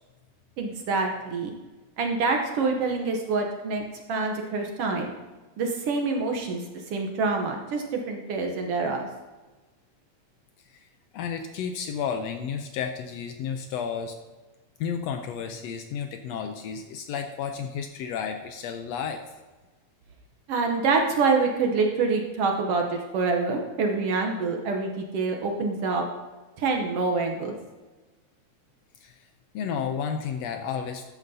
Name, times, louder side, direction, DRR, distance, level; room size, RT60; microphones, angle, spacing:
voice 1, 0.6-1.5 2.0-3.8 4.1-5.1 5.6-6.7 6.9-9.0 20.5-26.0 26.6-27.5, right 4 dB, 65° right, 2 dB, 1.7 m, -26 dB
voice 2, 11.1-14.2 14.8-19.2 29.0-29.2 29.5-31.0, left 7 dB, 75° left, 6 dB, 1.6 m, -32 dB
13.5 x 9.2 x 2.7 m, 1.2 s
omnidirectional pair, 3.3 m